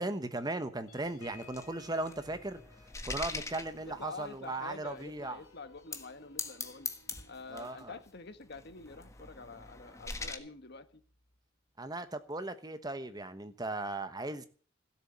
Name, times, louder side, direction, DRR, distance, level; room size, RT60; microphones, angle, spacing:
voice 1, 0.0-2.6 3.0-5.4 7.5-7.9 11.8-14.5, right 2 dB, 20° right, 1.1 m, -37 dB
sound 1, 0.9-9.8 10.2-10.4 10.7-11.0, left 4 dB, 85° left, 3.6 m, -60 dB
sound 2, 1.1-4.4 5.0-5.1 5.8-6.1 6.4-7.8 8.5-10.4, left 4 dB, 15° left, 1.4 m, -42 dB
voice 2, 3.8-6.9 7.3-11.0, left 3 dB, 55° left, 1.4 m, -47 dB
17.0 x 7.3 x 8.7 m
head